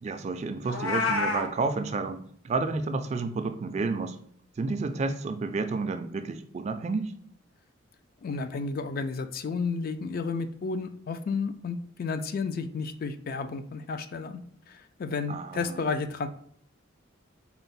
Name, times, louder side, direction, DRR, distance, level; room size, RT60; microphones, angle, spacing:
voice 1, 0.0-4.2 4.6-7.1 15.3-15.8, right 3 dB, 35° right, 8 dB, 0.3 m, -31 dB
Meow, 0.6-1.5, left 3 dB, 85° left, 0.8 m, -27 dB
voice 2, 8.2-14.4 14.7-16.3, left 4 dB, 45° left, 9 dB, 0.3 m, -32 dB
4.4 x 2.0 x 3.9 m, 0.63 s
head